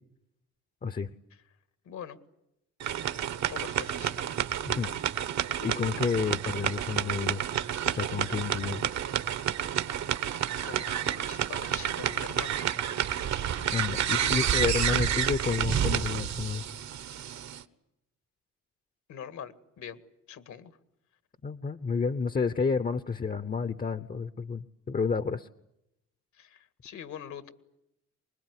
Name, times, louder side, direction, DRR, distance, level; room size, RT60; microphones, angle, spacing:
voice 1, 1.9-2.2 3.5-4.2 10.6-12.6 14.1-14.2 19.1-20.0 20.3-20.7 26.3-27.5, left 8 dB, 70° left, 12 dB, 2.0 m, -43 dB
sound 1, 2.8-17.6, right 9 dB, 65° right, 1.5 m, -30 dB
voice 2, 5.6-7.4 7.9-8.9 13.7-16.6 21.4-25.5, left 5 dB, 30° left, 13 dB, 0.9 m, -30 dB
25.0 x 20.5 x 9.8 m, 0.85 s
cardioid pair, 90°, 30 cm